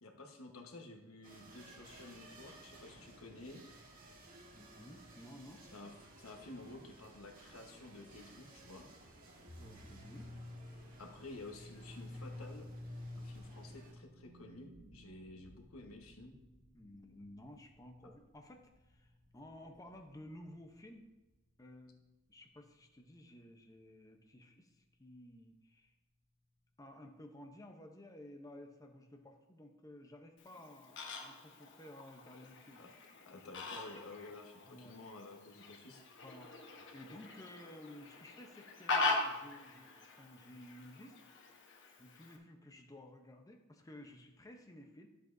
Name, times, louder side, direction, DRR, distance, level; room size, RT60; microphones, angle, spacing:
voice 1, 0.0-3.6 5.7-8.9 11.0-12.7 13.2-16.3 32.8-32.9 33.3-36.0, left 2 dB, 90° left, 2 dB, 1.2 m, -52 dB
sound 1, 1.2-13.9, right 2 dB, 45° right, 1.7 m, -58 dB
voice 2, 4.5-5.7 9.6-10.3 16.7-21.0 21.6-22.0 22.3-25.9 26.8-32.8 34.6-35.0 36.2-36.5 36.9-41.2 42.0-45.1, left 1 dB, 15° left, 3 dB, 0.7 m, -54 dB
sound 2, 9.5-20.7, left 1 dB, 15° right, 1.7 m, -52 dB
Fowl, 30.4-42.4, left 3 dB, 60° left, 1.1 m, -42 dB
11.5 x 7.6 x 2.6 m, 1.1 s
head